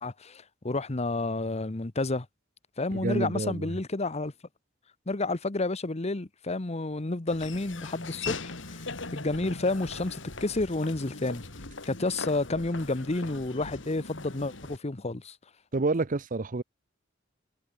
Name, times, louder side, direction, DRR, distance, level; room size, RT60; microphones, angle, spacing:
voice 1, 0.0-2.3 2.8-4.3 5.1-8.8 9.1-11.4 11.8-15.4, left 2 dB, 35° left, 1.0 m, -30 dB
voice 2, 2.9-3.7 15.7-16.6, right 3 dB, 45° right, 0.7 m, -28 dB
Laughter / Walk footsteps, 7.3-14.8, left 3 dB, 75° left, 3.4 m, -40 dB
head